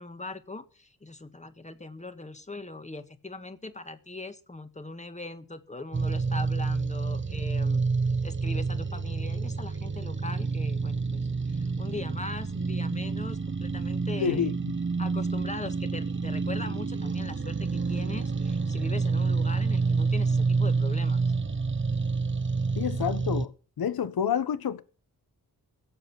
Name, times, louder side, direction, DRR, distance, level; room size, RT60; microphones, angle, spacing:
voice 1, 0.0-7.8 8.2-14.5 15.0-21.3, left 2 dB, 20° left, 1.6 m, -40 dB
sound 1, 5.9-23.5, right 4 dB, 35° right, 1.0 m, -28 dB
voice 2, 14.2-14.7 22.8-23.5 23.8-24.8, left 8 dB, 80° left, 1.3 m, -28 dB
16.0 x 8.0 x 7.5 m
wide cardioid pair, 100°, 36 cm